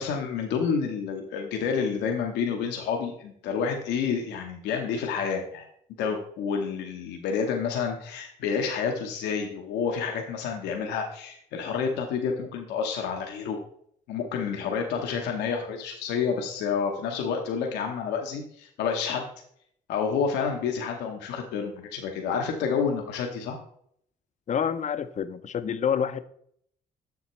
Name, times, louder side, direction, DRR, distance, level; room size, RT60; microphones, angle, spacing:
voice 1, 0.0-5.7 6.0-13.6 14.1-19.3 19.9-23.6, left 6 dB, 85° left, 2 dB, 0.9 m, -29 dB
voice 2, 24.5-26.2, left 7 dB, 45° left, 13 dB, 0.5 m, -27 dB
7.0 x 6.8 x 3.1 m, 0.68 s
supercardioid pair, 70°, 17 cm